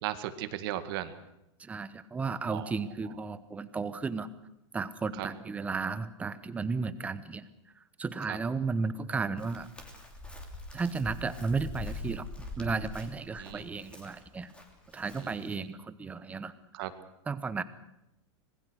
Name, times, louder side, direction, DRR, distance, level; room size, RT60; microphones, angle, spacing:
voice 1, 0.0-1.1 2.5-2.7 5.2-5.3 8.3-8.4 13.4-13.7 15.2-15.5 16.7-16.9, right 13 dB, 50° right, 10 dB, 2.1 m, -36 dB
voice 2, 1.6-4.3 4.7-7.5 8.0-9.7 10.7-14.5 14.9-16.5 17.3-17.6, right 4 dB, 10° right, 14 dB, 0.9 m, -34 dB
Chirp tweet, 9.4-15.5, left 2 dB, 5° left, 2.8 m, -44 dB
25.5 x 21.0 x 6.4 m, 0.86 s
supercardioid pair, 165°, 16 cm